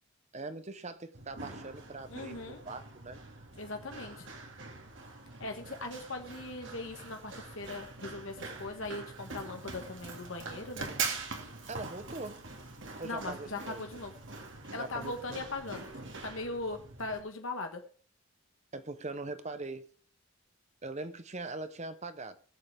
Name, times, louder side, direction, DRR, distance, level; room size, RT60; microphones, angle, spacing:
voice 1, 0.3-3.2 11.7-12.5 13.0-13.8 14.8-15.2 18.7-19.9 20.8-22.4, right 2 dB, 30° right, 0.9 m, -41 dB
Run, 1.1-17.2, right 4 dB, 60° right, 2.2 m, -43 dB
voice 2, 2.1-2.6 3.6-4.3 5.4-10.9 13.0-14.1 14.7-15.9 16.2-17.8, left 2 dB, 65° left, 1.3 m, -39 dB
19.5 x 7.8 x 3.6 m
head